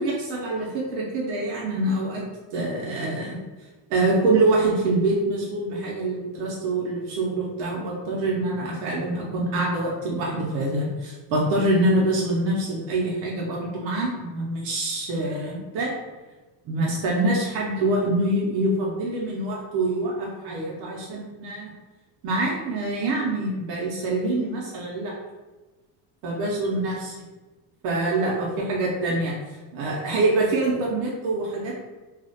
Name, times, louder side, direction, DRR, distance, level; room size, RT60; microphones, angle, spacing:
voice 1, 0.0-2.2 2.5-3.3 3.9-15.9 16.6-21.7 22.2-25.2 26.2-27.1 27.8-31.7, right 2 dB, 65° right, -3 dB, 0.6 m, -25 dB
2.4 x 2.0 x 2.6 m, 1.2 s
cardioid pair, 165°, 43 cm